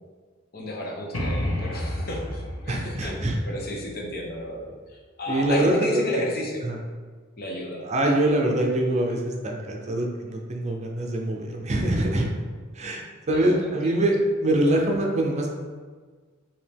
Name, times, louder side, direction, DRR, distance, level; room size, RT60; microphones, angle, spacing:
voice 1, 0.5-4.7 5.2-6.6 7.4-7.8 13.3-14.1, left 1 dB, 50° left, -1 dB, 0.8 m, -32 dB
sound 1, 1.1-4.8, left 1 dB, 85° left, 0.9 m, -32 dB
voice 2, 2.7-3.4 5.3-6.2 6.6-6.8 7.8-12.3 12.7-15.5, right 1 dB, 35° right, 1 dB, 0.6 m, -24 dB
5.2 x 2.8 x 3.4 m, 1.5 s
head